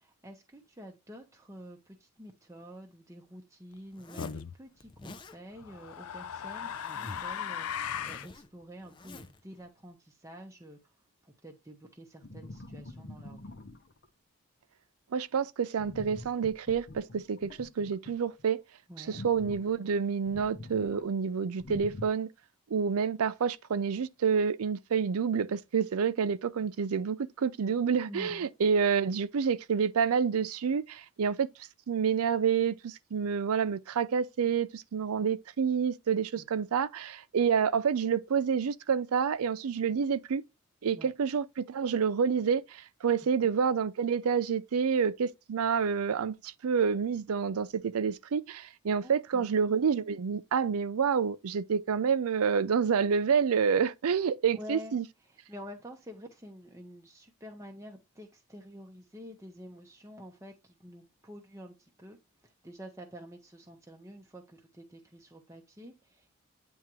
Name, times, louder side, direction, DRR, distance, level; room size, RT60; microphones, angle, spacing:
voice 1, 0.0-10.9 11.2-13.6 18.9-19.2 28.1-28.5 36.4-36.5 41.0-41.1 49.0-49.5 54.5-55.0 55.3-66.3, equal, 15° right, 0.7 m, -48 dB
Zipper (clothing), 3.9-4.4 4.8-5.4 6.2-7.4 7.6-9.4, left 2 dB, 20° left, 0.4 m, -48 dB
sound 1, 4.2-4.6 5.6-8.3, left 8 dB, 80° left, 0.5 m, -37 dB
sound 2, 12.2-14.1 15.8-18.4 19.1-21.0 21.6-22.1, left 2 dB, 50° left, 0.8 m, -45 dB
voice 2, 15.1-18.6 19.0-22.3 22.7-31.5 31.9-40.4 40.8-55.0, right 6 dB, 80° right, 0.5 m, -28 dB
8.9 x 3.5 x 3.0 m
head